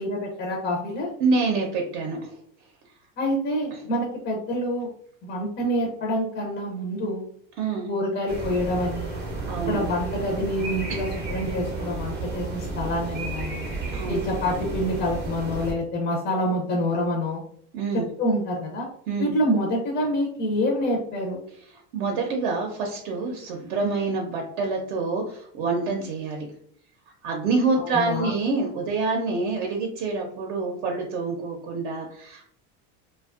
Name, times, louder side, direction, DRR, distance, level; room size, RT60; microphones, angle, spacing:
voice 1, 0.0-1.1 3.2-4.9 5.2-7.3 7.9-9.2 9.7-13.7 14.1-17.4 17.9-18.9 19.2-21.4 27.8-28.3, equal, 25° left, -1 dB, 0.4 m, -27 dB
voice 2, 1.2-2.3 7.6-7.9 9.5-9.8 10.9-11.0 13.9-14.2 17.7-18.0 19.1-19.3 21.9-26.5 27.2-32.4, right 4 dB, 70° right, 1 dB, 0.6 m, -26 dB
sound 1, 8.3-15.7, right 3 dB, 25° right, 0.5 m, -32 dB
2.5 x 2.2 x 2.3 m, 0.63 s
cardioid pair, 155°, 38 cm